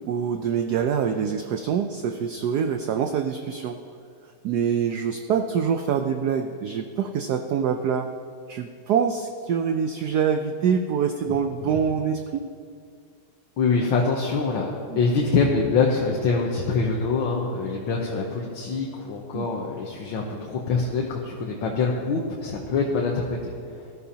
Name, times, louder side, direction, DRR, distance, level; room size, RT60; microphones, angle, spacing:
voice 1, 0.1-3.8 4.4-8.1 8.5-12.4 14.9-15.0 19.3-19.4, right 7 dB, 75° right, 6 dB, 0.9 m, -25 dB
voice 2, 13.6-14.7 15.0-23.8, left 4 dB, 75° left, -1 dB, 1.8 m, -24 dB
19.0 x 13.0 x 2.8 m, 2.3 s
omnidirectional pair, 2.3 m